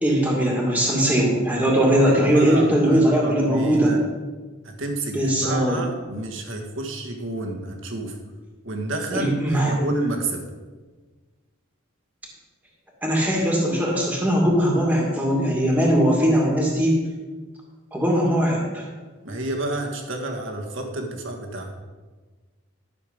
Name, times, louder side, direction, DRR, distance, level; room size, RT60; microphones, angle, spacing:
voice 1, 0.0-3.9 5.1-5.8 9.1-9.7 13.0-17.0 17.9-18.8, equal, 5° right, -2 dB, 2.2 m, -20 dB
voice 2, 2.3-4.1 4.6-8.2 8.6-10.4 19.2-21.7, right 2 dB, 65° right, 2 dB, 1.7 m, -30 dB
12.5 x 7.0 x 5.2 m, 1.3 s
head